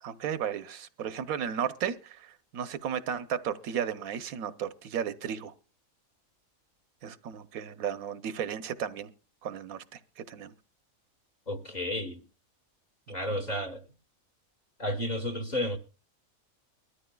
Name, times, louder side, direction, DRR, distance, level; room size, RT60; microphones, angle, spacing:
voice 1, 0.0-5.5 7.0-9.1 9.4-10.5 13.3-13.4, right 8 dB, 80° right, 1.2 m, -34 dB
voice 2, 11.5-12.2 13.1-13.8 14.8-15.8, left 1 dB, 35° left, 1.3 m, -32 dB
22.5 x 13.5 x 2.3 m
omnidirectional pair, 1.5 m